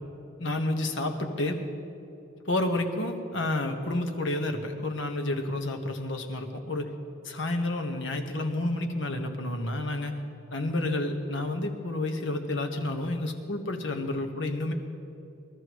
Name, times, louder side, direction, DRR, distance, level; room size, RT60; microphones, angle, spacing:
voice 1, 0.4-1.6 2.4-6.9 7.2-10.2 10.5-14.7, left 2 dB, 75° left, 4 dB, 1.3 m, -30 dB
22.0 x 14.0 x 3.1 m, 2.8 s
head